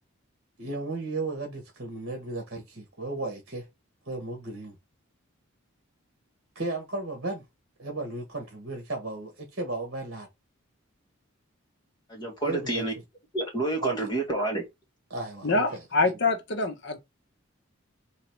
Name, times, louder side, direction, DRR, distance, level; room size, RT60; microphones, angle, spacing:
voice 1, 0.6-3.6 4.1-4.8 6.5-7.4 7.8-10.3 12.4-12.8 13.8-13.9 15.1-15.8, right 2 dB, 55° right, 1.3 m, -34 dB
voice 2, 12.1-12.9 13.3-14.6, right 2 dB, 20° left, 1.6 m, -29 dB
voice 3, 15.4-17.0, left 3 dB, 55° left, 1.0 m, -25 dB
4.0 x 2.9 x 4.5 m
head